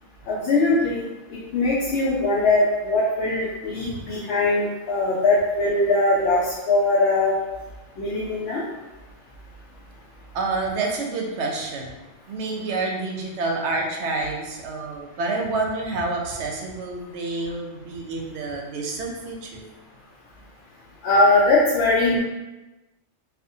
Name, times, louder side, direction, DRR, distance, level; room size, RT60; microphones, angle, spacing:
voice 1, 0.3-7.4 8.0-8.6 21.0-22.2, left 2 dB, 65° left, -7 dB, 0.8 m, -21 dB
voice 2, 10.3-11.9 12.3-19.7, right 3 dB, 70° right, 0 dB, 0.8 m, -28 dB
2.8 x 2.4 x 2.6 m, 1.1 s
omnidirectional pair, 1.3 m